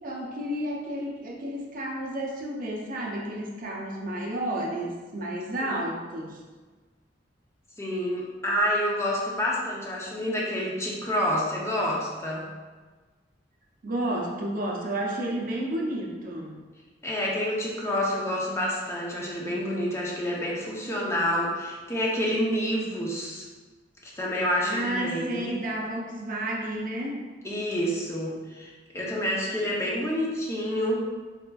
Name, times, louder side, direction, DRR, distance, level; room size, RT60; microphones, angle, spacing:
voice 1, 0.0-6.4 13.8-16.6 24.6-27.2, right 1 dB, 45° right, -2 dB, 0.5 m, -31 dB
voice 2, 7.8-12.4 17.0-23.5 24.0-25.5 27.4-31.0, equal, 15° left, -4 dB, 0.5 m, -28 dB
4.2 x 2.4 x 2.2 m, 1.4 s
head